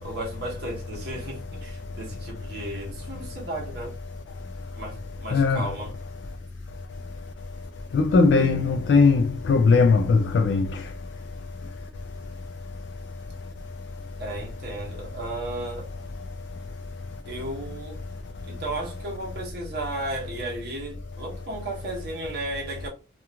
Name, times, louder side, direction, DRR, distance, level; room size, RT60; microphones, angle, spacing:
voice 1, 0.0-3.9 4.8-5.9 14.2-15.9 17.3-18.0 18.5-22.9, right 2 dB, 60° right, 0.9 m, -34 dB
voice 2, 5.3-5.7 7.9-10.7, left 4 dB, 80° left, 0.3 m, -19 dB
2.9 x 2.3 x 2.3 m
head